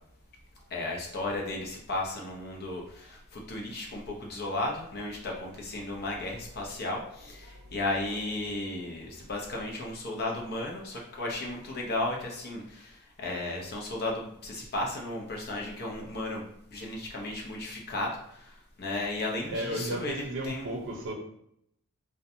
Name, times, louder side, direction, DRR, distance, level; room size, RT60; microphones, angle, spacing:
voice 1, 0.7-16.4 16.7-20.7, left 2 dB, 45° left, 0.6 m, -34 dB
voice 2, 19.5-21.1, right 1 dB, 55° right, 0.6 m, -34 dB
2.5 x 2.2 x 2.7 m
head